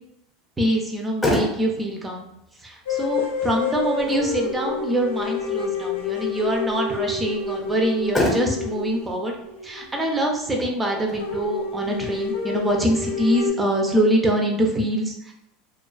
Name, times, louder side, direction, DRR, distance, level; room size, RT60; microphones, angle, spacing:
voice 1, 0.6-2.3 2.6-9.3 9.6-15.3, right 1 dB, 15° right, 1 dB, 0.5 m, -24 dB
Motor vehicle (road), 0.8-13.8, left 1 dB, 15° left, 0.8 m, -33 dB
sound 1, 2.9-10.2 10.5-10.6 10.9-11.0 11.2-13.5, left 5 dB, 90° left, 0.5 m, -28 dB
2.4 x 2.3 x 2.3 m, 0.83 s
hypercardioid pair, 105°, 0 cm